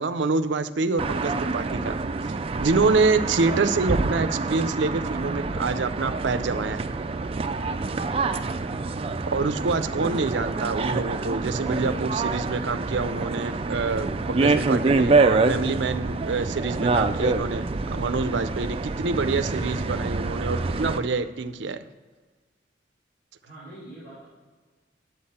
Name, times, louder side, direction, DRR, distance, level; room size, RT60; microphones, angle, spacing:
voice 1, 0.0-2.0 2.6-6.9 9.3-21.8, right 4 dB, 80° right, 11 dB, 0.5 m, -26 dB
sound 1, 1.0-21.0, right 3 dB, 30° right, 0.4 m, -26 dB
voice 2, 23.4-24.3, right 1 dB, 55° left, -10 dB, 3.2 m, -46 dB
9.5 x 8.0 x 4.2 m, 1.4 s
head